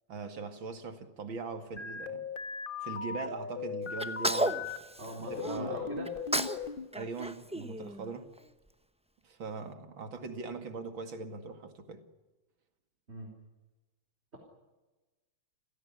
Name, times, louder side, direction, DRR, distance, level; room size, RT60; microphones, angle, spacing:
voice 1, 0.1-2.2 2.8-4.7 5.2-5.9 6.9-8.3 9.2-12.0, right 4 dB, 75° right, 3.0 m, -41 dB
sound 1, 1.8-4.8 5.3-6.9, left 5 dB, 30° left, 1.6 m, -38 dB
Sneeze, 4.0-5.6 6.1-6.7 6.9-8.4, right 1 dB, 10° right, 0.4 m, -33 dB
voice 2, 5.0-6.1 13.1-13.3, right 1 dB, 30° right, 4.5 m, -41 dB
29.5 x 16.5 x 10.0 m
omnidirectional pair, 2.1 m